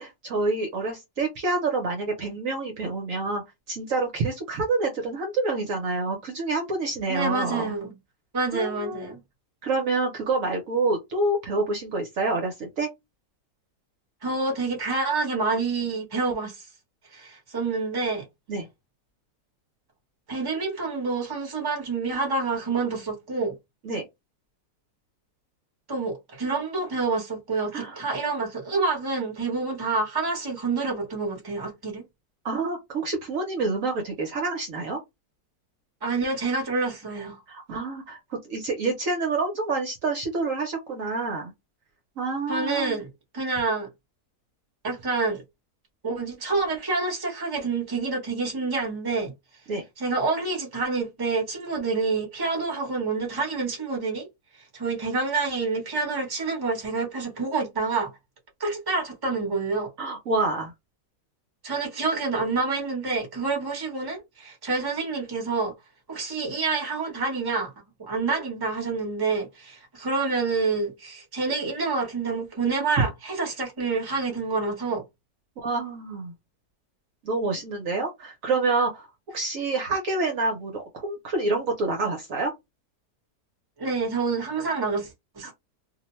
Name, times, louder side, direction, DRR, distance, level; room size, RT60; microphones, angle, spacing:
voice 1, 0.0-3.4 3.7-7.7 8.5-9.1 9.6-12.9 18.5-18.7 23.8-24.0 27.7-28.0 32.4-35.0 37.5-41.5 42.2-43.0 49.7-49.8 60.0-60.7 75.6-76.3 77.2-79.1 79.3-82.5 85.4-85.5, right 3 dB, 60° right, 1.0 m, -27 dB
voice 2, 7.1-7.9 8.3-9.2 14.2-16.6 17.1-18.2 20.3-23.6 25.9-32.0 36.0-37.4 42.5-43.1 43.3-43.9 44.8-45.4 46.0-49.3 50.0-54.3 54.7-58.1 58.6-59.9 61.6-65.7 66.1-67.7 68.0-75.0 83.8-85.5, right 4 dB, 15° right, 0.9 m, -27 dB
2.7 x 2.1 x 3.0 m
omnidirectional pair, 1.7 m